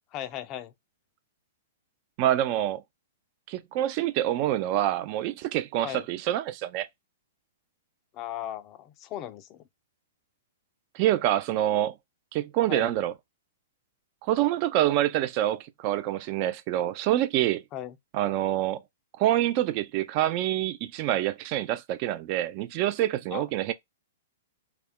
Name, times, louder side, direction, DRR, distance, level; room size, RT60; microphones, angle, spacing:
voice 1, 0.1-0.7 5.8-6.1 8.1-9.6 12.7-12.9 17.7-18.0 23.3-23.4, left 12 dB, 35° left, 0.3 m, -37 dB
voice 2, 2.2-2.8 3.5-6.9 10.9-11.9 12.3-13.1 14.3-17.6 18.1-18.8 19.2-23.7, right 13 dB, 40° right, 0.3 m, -26 dB
2.4 x 2.1 x 3.4 m
hypercardioid pair, 115°, 0 cm